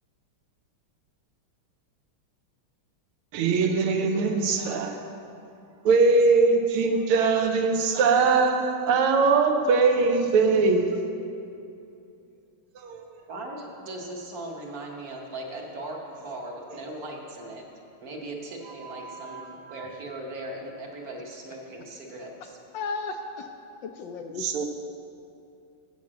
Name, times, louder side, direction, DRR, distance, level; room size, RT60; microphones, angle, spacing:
voice 1, 3.3-5.0 5.9-11.0 12.8-13.0 18.8-19.9 24.4-24.7, right 4 dB, 85° right, 5 dB, 1.7 m, -22 dB
voice 2, 13.3-17.6 18.0-19.4 19.7-22.6, right 1 dB, 55° right, 0 dB, 1.3 m, -38 dB
voice 3, 22.7-23.5 23.8-24.7, left 4 dB, 75° left, 5 dB, 1.1 m, -35 dB
7.5 x 7.1 x 7.4 m, 2.7 s
omnidirectional pair, 2.3 m